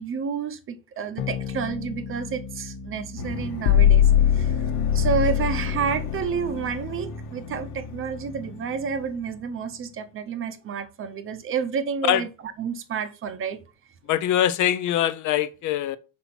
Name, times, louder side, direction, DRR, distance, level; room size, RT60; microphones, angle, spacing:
voice 1, 0.0-4.6 4.9-12.3 12.6-13.6, right 6 dB, 35° right, 0.7 m, -30 dB
sound 1, 1.2-6.0, left 6 dB, 90° left, 1.0 m, -37 dB
sound 2, 3.2-9.4, left 9 dB, 65° left, 1.1 m, -23 dB
voice 2, 14.1-16.0, left 11 dB, 50° left, 0.4 m, -23 dB
5.5 x 4.3 x 5.7 m
cardioid pair, 170°, 39 cm